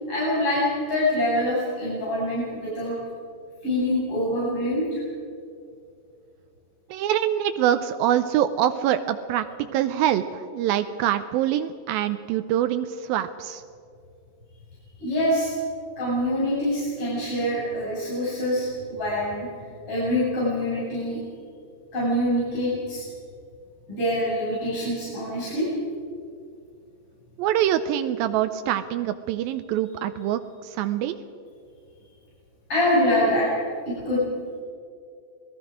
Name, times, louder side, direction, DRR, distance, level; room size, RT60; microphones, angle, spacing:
voice 1, 0.1-3.0 3.6-5.0 15.0-15.5 16.0-19.5 19.9-21.2 21.9-23.0 23.9-25.7 32.7-33.5 33.8-34.3, left 1 dB, 40° left, -8 dB, 7.2 m, -25 dB
voice 2, 6.9-9.5 9.7-10.2 10.5-13.6 27.4-30.4 30.8-31.2, right 11 dB, 85° right, 9 dB, 2.5 m, -24 dB
27.5 x 19.0 x 5.0 m, 2.4 s
omnidirectional pair, 4.1 m